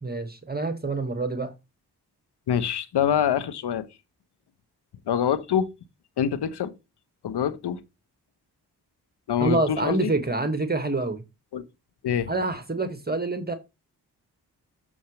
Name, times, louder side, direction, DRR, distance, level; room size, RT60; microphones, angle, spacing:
voice 1, 0.0-1.5 9.4-11.2 12.3-13.6, right 2 dB, 25° right, 1.7 m, -27 dB
voice 2, 2.5-3.9 5.1-5.7 6.2-6.7 7.2-7.8 9.3-10.1 11.5-11.6 12.0-12.3, left 8 dB, 75° left, 1.1 m, -25 dB
7.1 x 7.1 x 3.2 m
supercardioid pair, 45°, 41 cm